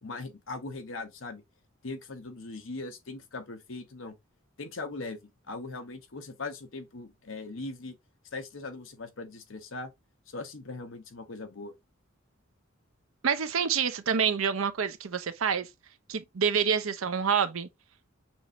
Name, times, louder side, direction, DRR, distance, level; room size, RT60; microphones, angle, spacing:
voice 1, 0.0-1.4 1.8-4.1 4.6-5.2 5.5-8.0 8.3-9.9 10.3-11.7, left 3 dB, 65° left, 1.0 m, -40 dB
voice 2, 13.2-15.7 16.1-17.7, right 7 dB, 80° right, 0.6 m, -27 dB
6.2 x 2.6 x 2.9 m
head